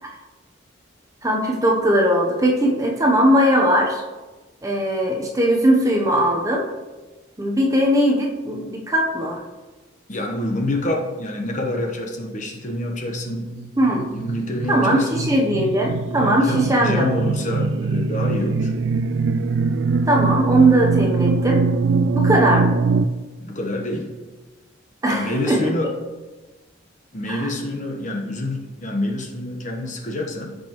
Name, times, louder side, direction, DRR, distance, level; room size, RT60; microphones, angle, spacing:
voice 1, 1.2-4.0 4.6-6.7 7.4-9.4 13.8-14.1 14.7-17.1 20.1-21.6 22.1-22.8 25.0-25.7 27.3-27.5, right 1 dB, 15° right, 0 dB, 0.8 m, -19 dB
voice 2, 10.1-13.5 14.1-15.2 16.4-18.7 23.4-24.1 25.1-25.9 27.1-30.6, left 1 dB, 40° left, 2 dB, 1.1 m, -27 dB
sound 1, 13.3-23.1, right 4 dB, 65° right, 0.3 m, -22 dB
15.0 x 5.3 x 3.1 m, 1.2 s
head